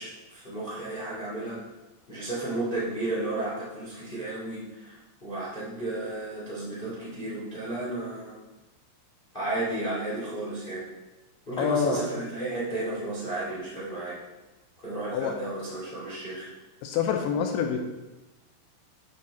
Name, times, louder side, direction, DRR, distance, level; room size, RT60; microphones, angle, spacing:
voice 1, 0.0-1.6 2.1-8.4 9.3-10.8 11.4-14.2 14.8-16.5, right 2 dB, 35° left, -8 dB, 0.8 m, -33 dB
voice 2, 11.6-12.0 15.1-15.3 16.8-17.8, left 7 dB, 85° left, 4 dB, 2.7 m, -26 dB
9.1 x 6.3 x 4.2 m, 1.1 s
omnidirectional pair, 5.8 m